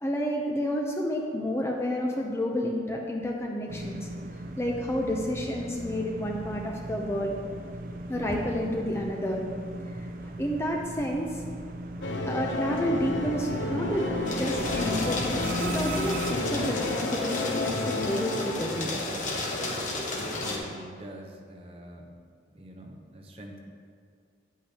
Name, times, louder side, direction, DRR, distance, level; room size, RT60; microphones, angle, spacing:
voice 1, 0.0-7.4 8.1-9.4 9.9-11.4 12.3-18.9, equal, 15° left, 0 dB, 0.5 m, -30 dB
sound 1, 3.7-16.3, right 1 dB, 45° right, 0.4 m, -37 dB
sound 2, 12.0-20.6, left 2 dB, 75° left, 0.7 m, -32 dB
sound 3, 14.3-20.6, left 2 dB, 40° left, 1.1 m, -33 dB
voice 2, 20.1-22.1 22.5-23.6, right 1 dB, 30° right, 1 dB, 0.8 m, -45 dB
10.0 x 8.4 x 2.9 m, 2.2 s
head